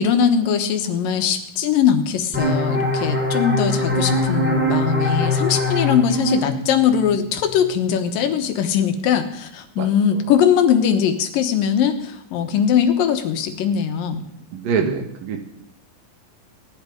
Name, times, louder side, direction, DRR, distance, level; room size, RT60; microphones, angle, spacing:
voice 1, 0.0-14.2, left 8 dB, 75° left, 7 dB, 2.8 m, -20 dB
sound 1, 2.3-7.7, left 1 dB, 5° right, 3.6 m, -22 dB
voice 2, 14.5-15.4, right 6 dB, 75° right, 4 dB, 3.3 m, -24 dB
17.5 x 11.0 x 5.1 m, 0.73 s
omnidirectional pair, 4.0 m